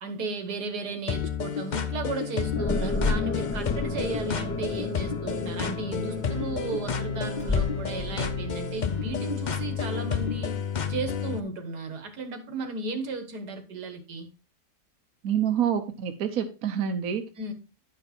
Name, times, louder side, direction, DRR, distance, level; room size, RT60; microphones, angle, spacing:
voice 1, 0.0-10.6 10.9-14.3 17.4-17.5, right 3 dB, 80° right, 1.9 m, -35 dB
sound 1, 1.1-11.4, left 6 dB, 50° left, 0.5 m, -31 dB
sound 2, 2.6-10.5, left 3 dB, 10° left, 0.9 m, -33 dB
voice 2, 15.2-17.2, right 9 dB, 65° right, 1.3 m, -27 dB
10.5 x 5.2 x 4.2 m
omnidirectional pair, 1.7 m